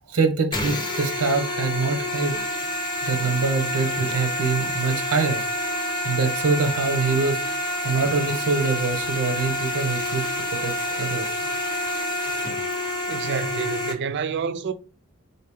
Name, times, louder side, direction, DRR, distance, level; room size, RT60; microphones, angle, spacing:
voice 1, 0.1-2.3 3.0-5.4 6.0-7.4 7.8-11.3, right 4 dB, 85° right, 0.8 m, -24 dB
sound 1, 0.5-13.9, left 1 dB, 20° left, 0.7 m, -28 dB
voice 2, 13.1-14.7, right 6 dB, 50° right, 0.4 m, -28 dB
3.9 x 2.8 x 3.4 m
head